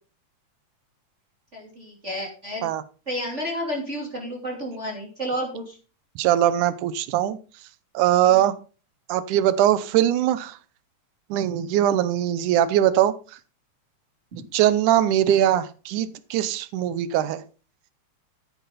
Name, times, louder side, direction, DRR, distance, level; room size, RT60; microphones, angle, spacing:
voice 1, 1.5-2.7 3.1-5.8 8.3-8.4, equal, 25° right, -2 dB, 2.9 m, -31 dB
voice 2, 6.2-7.4 7.9-8.6 9.1-10.6 11.3-13.1 14.5-17.4, right 11 dB, 90° right, 15 dB, 2.3 m, -21 dB
13.5 x 10.0 x 4.2 m, 0.37 s
omnidirectional pair, 3.4 m